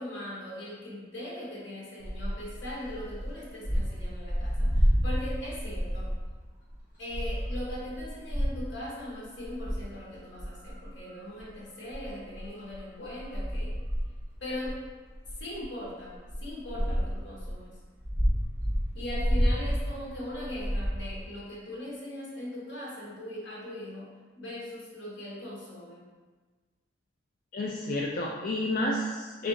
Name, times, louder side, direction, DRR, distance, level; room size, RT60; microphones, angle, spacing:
voice 1, 0.0-6.1 7.0-13.8 14.4-14.8 15.4-17.8 18.9-24.1 24.3-26.1, left 1 dB, 70° left, -5 dB, 1.3 m, -40 dB
sound 1, 2.0-6.4 6.7-6.8 7.1-8.8 9.3-9.8 10.4-11.5 11.9-17.5 18.0-21.2, equal, 10° right, 1.1 m, -30 dB
voice 2, 27.5-29.5, left 1 dB, 45° left, -2 dB, 0.3 m, -30 dB
3.7 x 3.4 x 3.8 m, 1.4 s
head